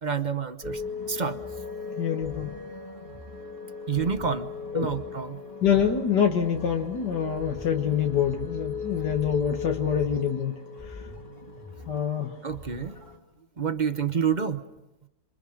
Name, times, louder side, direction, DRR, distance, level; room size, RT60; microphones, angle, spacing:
voice 1, 0.0-0.8 1.1-1.4 3.9-5.4 12.4-13.0 13.6-14.6, right 6 dB, 35° right, 10 dB, 0.9 m, -28 dB
sound 1, 0.6-13.2, left 5 dB, 20° left, 3.0 m, -38 dB
voice 2, 1.9-2.5 4.7-4.9 5.6-11.1 11.9-12.4, left 8 dB, 85° left, 3 dB, 2.1 m, -26 dB
27.5 x 26.0 x 6.6 m, 0.95 s
omnidirectional pair, 1.8 m